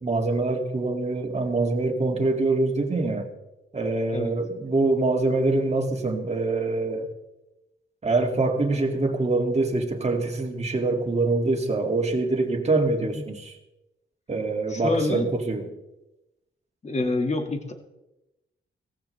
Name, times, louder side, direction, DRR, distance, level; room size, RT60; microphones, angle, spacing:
voice 1, 0.0-3.3 3.7-7.1 8.0-13.5 14.3-15.7, right 3 dB, 30° right, 2 dB, 2.3 m, -24 dB
voice 2, 14.7-15.3 16.8-17.7, left 3 dB, 35° left, 4 dB, 1.9 m, -26 dB
18.0 x 15.0 x 3.3 m, 0.95 s
wide cardioid pair, 115°, 21 cm